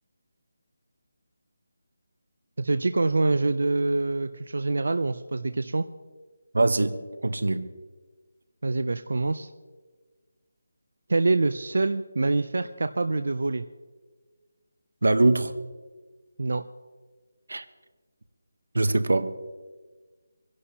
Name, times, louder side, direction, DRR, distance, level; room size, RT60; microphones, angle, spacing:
voice 1, 2.6-5.8 8.6-9.5 11.1-13.6 16.4-16.6, right 3 dB, 60° right, 10 dB, 0.4 m, -25 dB
voice 2, 6.5-7.0 7.2-7.7 15.0-15.5 17.5-17.6 18.7-19.3, right 2 dB, 90° right, 11 dB, 0.9 m, -22 dB
26.5 x 11.5 x 2.8 m, 1.4 s
figure-of-eight pair, 180°, 0 cm